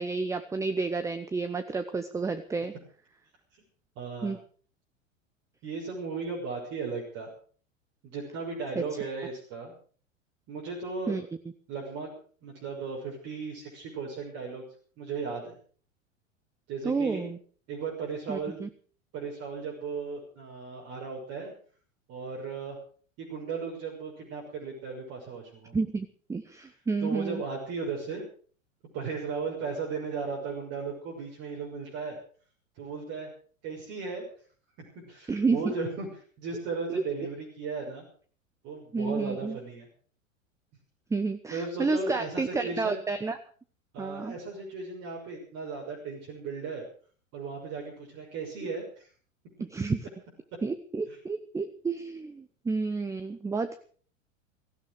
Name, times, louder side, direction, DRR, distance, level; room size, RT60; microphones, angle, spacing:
voice 1, 0.0-2.7 4.2-4.4 11.1-11.2 16.8-17.4 18.3-18.7 25.7-27.4 35.3-35.7 36.9-37.0 38.9-39.6 41.1-43.4 44.0-44.3 49.6-50.0 50.6-53.8, right 4 dB, 10° right, 10 dB, 0.9 m, -30 dB
voice 2, 4.0-4.3 5.6-7.3 8.0-9.7 10.5-11.2 11.7-12.1 12.4-14.6 15.0-15.5 16.7-17.3 17.7-18.6 19.1-21.5 22.1-22.8 23.2-25.8 27.0-28.3 28.9-32.2 32.8-33.3 33.6-34.2 35.0-36.1 36.4-38.0 38.6-39.9 41.5-43.0 43.9-46.8 47.3-49.1 51.1-51.2, right 4 dB, 40° right, -1 dB, 6.3 m, -36 dB
17.5 x 16.0 x 5.1 m, 0.44 s
figure-of-eight pair, 90°, 39 cm